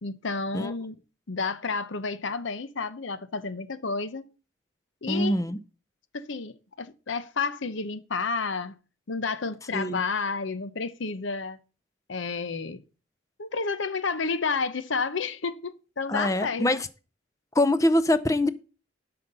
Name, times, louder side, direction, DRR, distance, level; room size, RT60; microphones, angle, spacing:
voice 1, 0.0-1.0 1.3-4.2 5.0-5.4 6.1-8.8 9.1-11.6 12.1-12.8 13.4-16.6, left 4 dB, 75° left, 0.8 m, -30 dB
voice 2, 5.1-5.6 9.7-10.0 16.1-16.9 17.5-18.5, left 1 dB, 15° left, 0.5 m, -24 dB
11.5 x 5.8 x 5.4 m
head